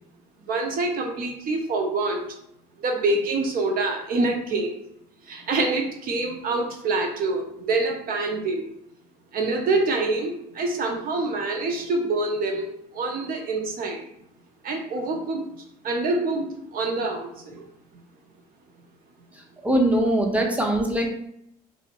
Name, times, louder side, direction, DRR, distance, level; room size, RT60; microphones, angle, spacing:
voice 1, 0.5-2.3 2.8-4.7 5.3-8.7 9.3-12.6 12.9-14.0 14.6-15.5 15.8-17.6, right 3 dB, 50° right, 2 dB, 0.9 m, -26 dB
voice 2, 19.6-21.1, right 1 dB, 5° right, 1 dB, 0.8 m, -21 dB
2.9 x 2.7 x 2.9 m, 0.73 s
hypercardioid pair, 65°, 18 cm